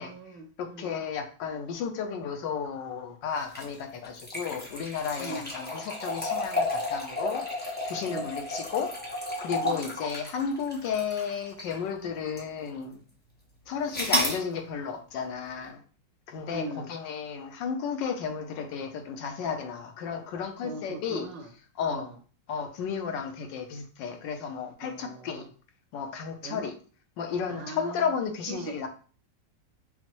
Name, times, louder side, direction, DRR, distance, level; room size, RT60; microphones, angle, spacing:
voice 1, 0.0-0.9 5.2-5.5 8.0-8.3 9.5-9.8 16.5-16.9 20.6-21.5 21.9-22.2 24.8-25.5 26.4-26.7 27.5-28.1 28.5-28.7, right 2 dB, 80° right, 4 dB, 1.3 m, -40 dB
voice 2, 0.6-7.4 7.9-8.9 9.2-13.0 13.7-15.8 16.3-21.3 21.8-22.1 22.5-25.4 25.9-26.7 27.2-28.9, left 6 dB, 75° left, 6 dB, 1.3 m, -33 dB
sound 1, 3.4-11.9 12.4-12.5 13.9-14.4, left 1 dB, 15° left, 0.4 m, -32 dB
5.7 x 2.1 x 3.0 m, 0.39 s
omnidirectional pair, 2.0 m